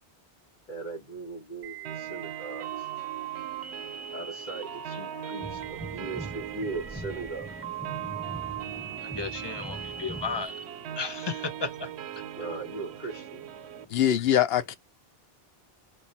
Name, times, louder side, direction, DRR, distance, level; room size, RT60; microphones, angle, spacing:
voice 1, 0.7-3.0 4.1-7.5 12.4-13.4, right 3 dB, 50° left, 1.8 m, -39 dB
sound 1, 1.6-10.6, right 9 dB, 50° right, 0.8 m, -40 dB
sound 2, 1.8-13.8, right 10 dB, 85° right, 0.9 m, -41 dB
sound 3, 5.4-10.5, right 1 dB, 10° right, 0.5 m, -42 dB
voice 2, 9.0-10.6 11.0-12.2, left 4 dB, 30° left, 0.7 m, -35 dB
voice 3, 13.9-14.8, left 11 dB, 75° left, 0.8 m, -23 dB
3.2 x 3.1 x 4.1 m
omnidirectional pair, 1.1 m